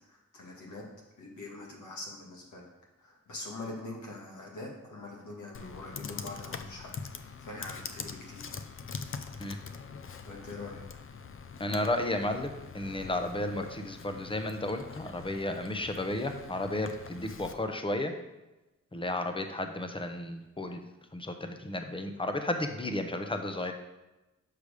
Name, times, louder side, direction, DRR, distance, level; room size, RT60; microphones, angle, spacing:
voice 1, 0.1-0.8 1.2-2.7 3.0-8.5 10.2-10.8, left 2 dB, 85° left, -1 dB, 1.8 m, -43 dB
Computer keyboard, 5.5-17.5, left 5 dB, 45° left, 0.6 m, -44 dB
voice 2, 11.6-18.1 18.9-20.8 21.1-23.7, left 1 dB, 20° left, 6 dB, 0.8 m, -33 dB
6.6 x 5.1 x 5.0 m, 1.0 s
cardioid pair, 85°, 29 cm